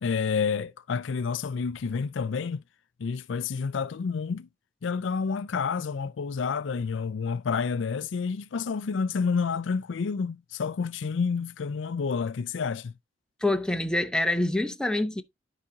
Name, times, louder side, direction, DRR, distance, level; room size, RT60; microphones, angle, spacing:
voice 1, 0.0-2.6 3.0-4.5 4.8-12.9, left 5 dB, 75° left, 0.4 m, -29 dB
voice 2, 13.4-15.2, left 1 dB, 5° left, 0.7 m, -26 dB
12.0 x 5.0 x 2.8 m
head